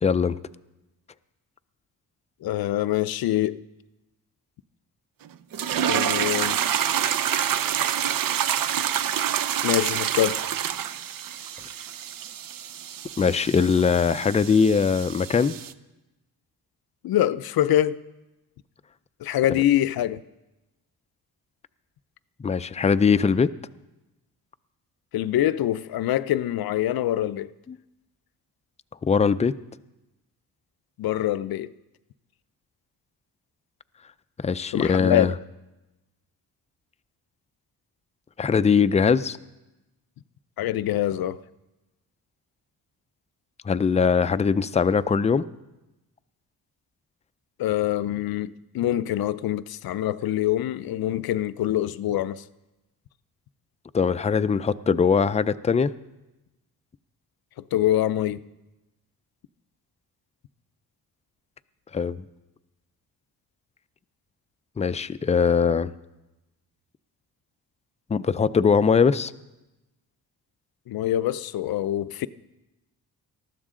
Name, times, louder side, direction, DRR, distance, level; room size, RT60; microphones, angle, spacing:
voice 1, 0.0-0.4 13.2-15.6 22.4-23.5 27.7-27.8 29.0-29.5 34.4-35.3 38.4-39.4 43.6-45.4 53.9-55.9 61.9-62.2 64.8-65.9 68.1-69.3, left 6 dB, 20° left, 0.4 m, -21 dB
voice 2, 2.4-3.6 5.9-6.6 9.6-10.4 17.0-18.0 19.2-20.2 25.1-27.5 31.0-31.7 34.7-35.3 40.6-41.4 47.6-52.4 57.7-58.4 70.9-72.3, left 12 dB, 70° left, 0.6 m, -25 dB
sound 1, 5.5-15.7, right 10 dB, 60° right, 0.6 m, -27 dB
19.5 x 13.5 x 3.8 m
cardioid pair, 95°, 38 cm